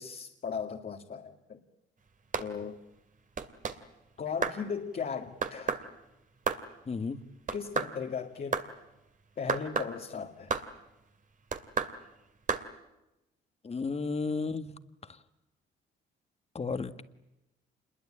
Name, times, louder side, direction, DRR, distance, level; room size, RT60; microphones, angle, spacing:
voice 1, 0.0-1.6 2.4-2.8 4.2-5.9 7.5-8.6 9.4-10.5, left 6 dB, 45° left, 2 dB, 2.3 m, -37 dB
sound 1, 2.3-2.5 3.4-3.8 4.4-4.6 5.4-5.9 6.5-6.6 7.5-7.9 8.5-8.7 9.5-9.9 10.5-10.7 11.5-11.9 12.5-12.6, right 5 dB, 40° right, 2.5 m, -31 dB
voice 2, 6.9-7.2 13.6-14.7 16.5-17.0, left 4 dB, 30° left, 11 dB, 1.7 m, -33 dB
27.5 x 22.0 x 8.8 m, 0.96 s
cardioid pair, 90°, 20 cm